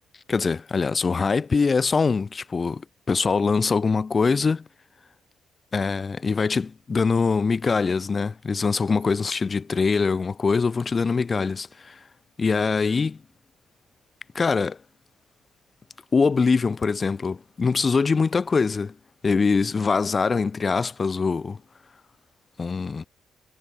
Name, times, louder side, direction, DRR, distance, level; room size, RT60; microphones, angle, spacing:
voice 1, 0.3-2.8 3.1-4.6 5.7-11.9 12.4-13.2 14.3-14.8 16.1-18.9 19.2-21.6 22.6-23.0, left 4 dB, 35° left, 3.9 m, -23 dB
cardioid pair, 90°, 0 cm